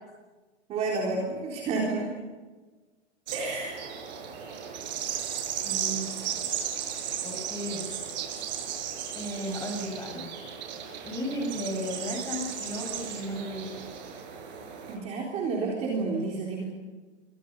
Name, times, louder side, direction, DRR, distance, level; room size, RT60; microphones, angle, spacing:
voice 1, 0.7-2.1 3.3-3.9 14.9-16.6, right 3 dB, 20° right, -1 dB, 3.8 m, -30 dB
sound 1, 3.3-15.0, right 9 dB, 40° right, 7.3 m, -35 dB
voice 2, 5.6-6.1 7.2-7.9 9.1-10.3 11.0-13.9, equal, 10° left, 2 dB, 7.2 m, -34 dB
29.5 x 24.0 x 5.5 m, 1.3 s
hypercardioid pair, 165°, 34 cm